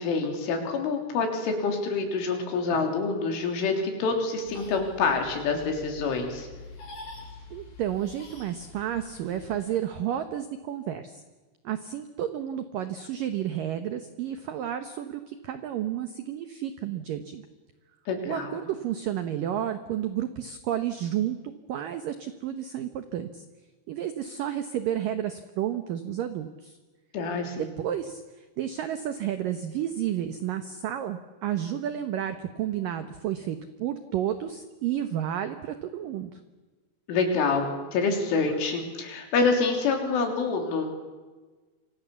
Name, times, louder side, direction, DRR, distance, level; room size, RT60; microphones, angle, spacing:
voice 1, 0.0-6.5 18.1-18.6 27.1-27.7 37.1-40.9, left 4 dB, 85° left, 3 dB, 6.0 m, -27 dB
sound 1, 4.5-9.8, left 3 dB, 65° left, 6.7 m, -46 dB
voice 2, 7.5-11.2 11.6-17.4 18.3-21.4 21.7-23.4 23.9-26.8 27.6-28.2 28.6-36.4, right 10 dB, 90° right, 9 dB, 1.9 m, -31 dB
28.5 x 25.5 x 7.2 m, 1.3 s
omnidirectional pair, 5.5 m